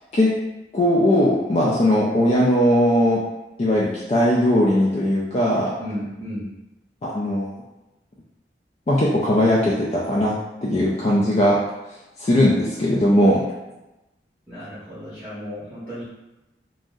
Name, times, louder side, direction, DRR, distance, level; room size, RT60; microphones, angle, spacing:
voice 1, 0.7-3.2 3.6-5.7 7.0-7.5 8.9-10.3 10.6-11.6 12.2-13.5, left 1 dB, 35° left, -5 dB, 0.3 m, -19 dB
voice 2, 5.8-6.5 14.5-16.0, equal, 10° right, -13 dB, 0.8 m, -34 dB
2.6 x 2.0 x 3.5 m, 0.99 s
head